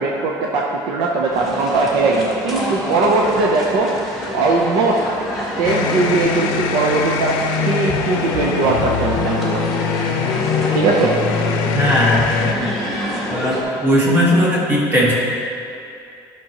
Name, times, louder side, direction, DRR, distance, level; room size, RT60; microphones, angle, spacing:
voice 1, 0.0-3.9 4.3-5.0 5.6-7.4 7.7-9.6 10.7-11.2, right 3 dB, 65° right, -1 dB, 0.8 m, -19 dB
sound 1, 1.3-13.6, equal, ahead, 1.5 m, -27 dB
sound 2, 5.6-12.5, left 6 dB, 80° left, 0.6 m, -22 dB
voice 2, 11.7-12.7 13.3-15.1, equal, 25° right, -5 dB, 1.6 m, -18 dB
12.5 x 6.2 x 3.0 m, 2.6 s
cardioid pair, 175°, 9 cm